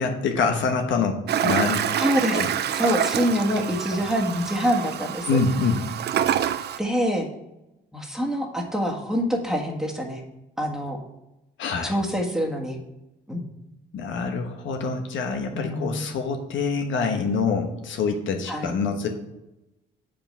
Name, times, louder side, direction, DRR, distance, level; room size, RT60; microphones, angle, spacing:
voice 1, 0.0-2.5 5.3-5.8 11.6-12.0 13.9-19.1, left 4 dB, 75° left, 5 dB, 1.1 m, -26 dB
Toilet flush, 1.3-6.8, right 10 dB, 55° right, 0.5 m, -27 dB
voice 2, 2.0-5.3 6.8-7.3 7.9-10.2 10.6-11.0 11.8-12.8 13.3-13.4 15.5-16.0 18.5-18.7, equal, ahead, 0 dB, 1.5 m, -25 dB
7.1 x 5.2 x 5.5 m, 0.93 s
cardioid pair, 90°, 20 cm